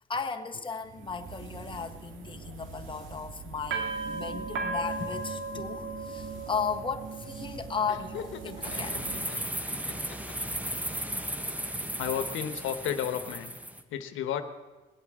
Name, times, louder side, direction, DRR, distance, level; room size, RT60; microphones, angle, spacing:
voice 1, 0.1-9.0, left 5 dB, 25° left, 4 dB, 1.4 m, -35 dB
sound 1, 0.9-9.2, right 3 dB, 75° right, 2.2 m, -38 dB
Laughter, 7.9-9.4 9.8-10.7, left 8 dB, 70° left, 1.3 m, -43 dB
sound 2, 8.6-13.8, right 1 dB, 5° right, 1.3 m, -35 dB
voice 2, 12.0-13.5 13.9-14.4, left 10 dB, 85° left, 8 dB, 1.2 m, -32 dB
20.5 x 8.3 x 7.7 m, 1.2 s
cardioid pair, 90°, 20 cm